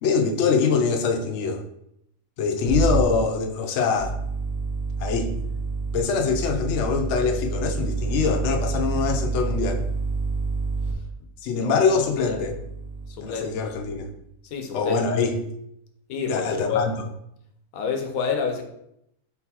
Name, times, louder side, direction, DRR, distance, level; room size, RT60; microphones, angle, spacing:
voice 1, 0.0-1.6 2.4-4.2 5.0-5.3 5.9-9.8 11.4-12.6 13.2-14.1 14.7-15.4 16.3-16.9, left 5 dB, 65° left, 3 dB, 0.8 m, -24 dB
sound 1, 2.7-3.0 4.0-10.9 12.0-13.2 13.7-14.1, right 4 dB, 70° right, 0.9 m, -28 dB
voice 2, 11.5-12.4 13.1-13.5 14.5-15.0 16.1-16.9 17.7-18.6, left 5 dB, 85° left, 4 dB, 1.1 m, -29 dB
4.0 x 3.8 x 2.8 m, 0.77 s
omnidirectional pair, 1.5 m